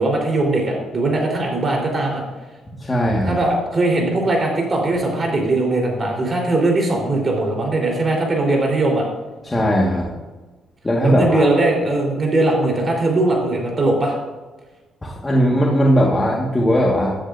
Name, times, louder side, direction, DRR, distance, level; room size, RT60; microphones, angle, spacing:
voice 1, 0.0-2.2 3.2-9.0 11.0-14.1, right 2 dB, 40° right, 0 dB, 3.9 m, -20 dB
voice 2, 2.8-3.4 9.4-10.1 10.8-11.5 15.0-17.2, equal, 20° left, -3 dB, 1.7 m, -18 dB
16.0 x 10.0 x 2.7 m, 1.2 s
cardioid pair, 90°, 0 cm